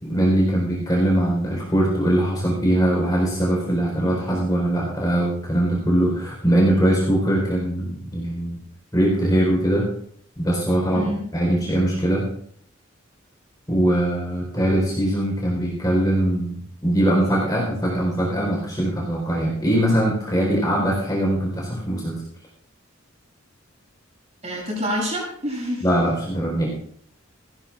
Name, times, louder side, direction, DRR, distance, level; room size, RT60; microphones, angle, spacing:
voice 1, 0.0-8.6 8.9-9.9 10.4-12.3 13.7-22.2 25.8-26.7, right 1 dB, 20° left, -2 dB, 4.3 m, -21 dB
voice 2, 24.4-25.9, equal, 35° right, -3 dB, 7.2 m, -27 dB
18.5 x 16.5 x 2.5 m, 0.63 s
head